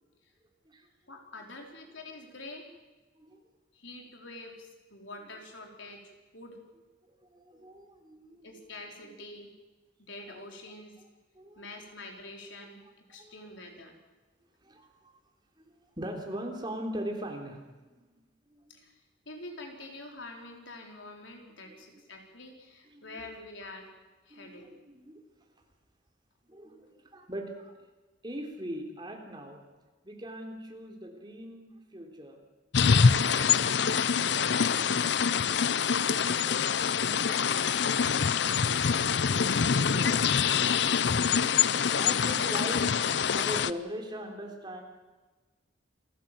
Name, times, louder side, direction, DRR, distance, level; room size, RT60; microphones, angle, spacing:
voice 1, 1.1-2.7 3.7-6.6 8.4-9.6 10.0-11.0 11.6-13.9 18.7-19.0 19.3-23.9 24.3-24.7 33.3-35.0 35.5-37.9 38.3-38.4, left 2 dB, 80° left, 2 dB, 4.4 m, -46 dB
voice 2, 7.2-8.5 9.0-9.1 10.3-10.4 11.4-11.6 13.2-13.7 14.6-15.2 15.6-15.7 16.0-17.9 18.5-18.8 21.6-21.8 22.9-23.2 24.3-25.2 26.5-27.7 28.2-29.6 30.0-32.4 39.9-40.3 42.0-43.1 43.3-44.8, equal, 25° right, 2 dB, 3.4 m, -40 dB
sound 1, 32.7-43.7, left 6 dB, 65° left, 0.6 m, -25 dB
27.5 x 15.0 x 7.8 m, 1.2 s
head